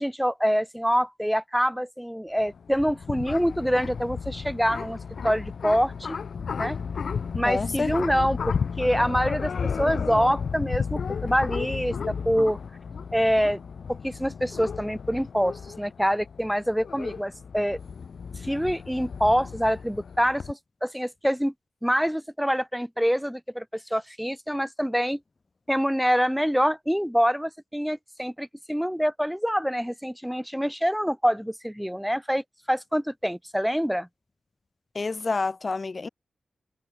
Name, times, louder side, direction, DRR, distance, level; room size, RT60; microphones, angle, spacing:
voice 1, 0.0-5.0 5.2-6.2 6.6-6.8 7.3-9.5 9.8-12.6 13.1-13.6 13.9-17.8 18.4-21.5 21.8-25.2 25.7-34.1, equal, ahead, 0.7 m, -25 dB
sound 1, 2.4-20.5, left 6 dB, 75° left, 0.8 m, -33 dB
voice 2, 7.4-7.9 34.9-36.1, left 3 dB, 40° left, 0.6 m, -28 dB
wide cardioid pair, 95°, 0 cm